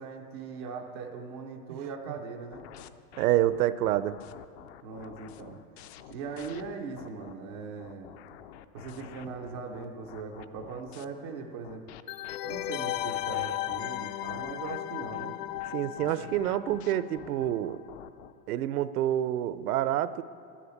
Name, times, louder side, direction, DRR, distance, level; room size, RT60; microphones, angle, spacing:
voice 1, 0.0-2.6 4.8-5.6 6.1-8.1 8.7-11.8 12.4-15.4 16.2-16.5, right 5 dB, 20° right, 1 dB, 0.3 m, -40 dB
sound 1, 2.5-7.3 7.8-11.1 11.6-18.3, left 10 dB, 45° left, 0.5 m, -49 dB
voice 2, 3.2-4.2 15.7-17.8 18.5-20.2, right 13 dB, 70° right, 15 dB, 0.7 m, -27 dB
sound 2, 12.1-17.6 17.8-17.9, left 14 dB, 90° left, 0.6 m, -35 dB
11.0 x 10.0 x 8.0 m, 2.5 s
supercardioid pair, 160°, 47 cm